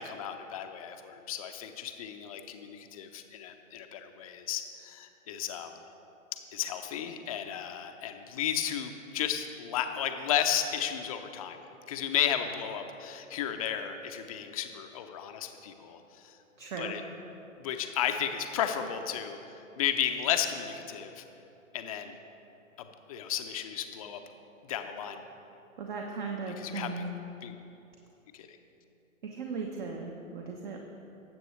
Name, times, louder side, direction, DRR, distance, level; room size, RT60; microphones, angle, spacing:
voice 1, 0.0-5.7 6.5-11.6 11.9-16.0 16.8-17.0 17.6-19.4 19.8-21.2 21.7-22.1 23.1-24.2 24.7-25.2 26.6-26.9 27.4-27.5 28.3-28.5, left 9 dB, 25° left, 6 dB, 0.6 m, -33 dB
voice 2, 16.6-16.9 25.8-27.1 29.2-30.8, right 4 dB, 35° right, 1 dB, 1.0 m, -37 dB
19.0 x 7.7 x 3.2 m, 2.9 s
figure-of-eight pair, 120°, 41 cm